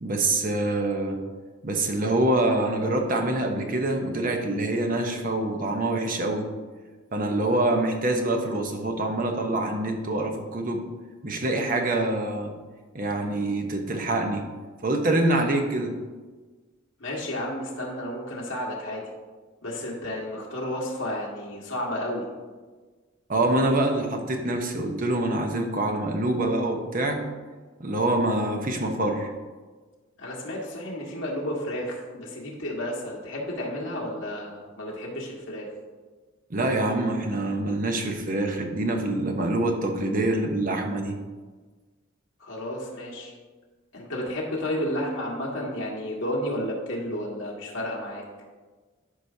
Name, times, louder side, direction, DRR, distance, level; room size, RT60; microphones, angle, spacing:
voice 1, 0.0-1.2 1.6-6.5 7.1-10.8 11.2-12.5 12.9-14.4 14.8-15.9 23.3-27.2 27.8-29.3 36.5-41.2, right 2 dB, 40° right, 4 dB, 0.9 m, -25 dB
voice 2, 17.0-19.0 19.6-22.2 30.2-35.7 42.4-43.3 43.9-48.2, left 1 dB, 70° left, -4 dB, 1.6 m, -32 dB
12.5 x 5.0 x 2.7 m, 1.4 s
head